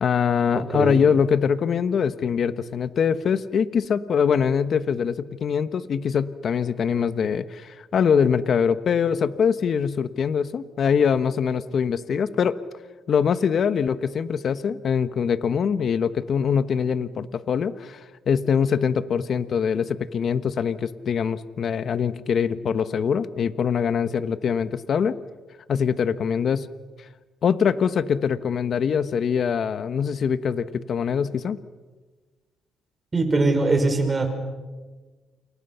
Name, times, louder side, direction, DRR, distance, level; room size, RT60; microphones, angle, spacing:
voice 1, 0.0-12.6 13.1-25.2 25.7-26.7 27.4-31.6, left 7 dB, 55° left, 13 dB, 1.2 m, -23 dB
voice 2, 33.1-34.3, right 3 dB, 25° right, 5 dB, 6.0 m, -21 dB
29.0 x 28.0 x 5.8 m, 1.3 s
cardioid pair, 90°, 0 cm